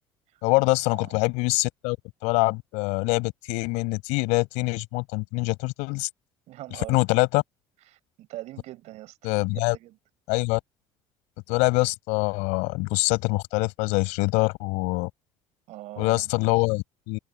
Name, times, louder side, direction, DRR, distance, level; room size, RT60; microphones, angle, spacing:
voice 1, 0.4-2.0 2.2-6.1 6.9-7.4 9.2-9.8 10.3-10.6 11.5-15.1 16.0-17.2, left 27 dB, 75° left, 5.6 m, -24 dB
voice 2, 6.5-7.0 7.9-9.3 9.7-10.0 15.7-16.3, right 16 dB, 65° right, 6.0 m, -41 dB
supercardioid pair, 75°, 12 cm